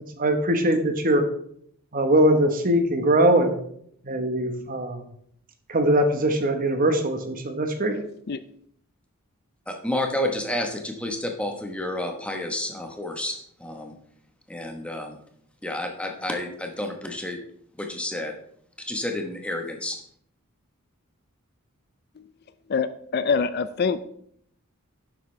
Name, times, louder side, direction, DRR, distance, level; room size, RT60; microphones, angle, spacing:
voice 1, 0.2-1.2 1.9-3.5 4.0-5.0 5.7-8.0, right 1 dB, 40° right, 6 dB, 1.2 m, -21 dB
voice 2, 9.7-14.0 14.5-15.2 15.6-17.4 17.8-18.3 18.8-20.0, left 1 dB, 5° left, 3 dB, 1.1 m, -30 dB
voice 3, 22.7-24.0, left 5 dB, 45° left, 13 dB, 0.4 m, -25 dB
11.0 x 7.7 x 3.3 m, 0.67 s
head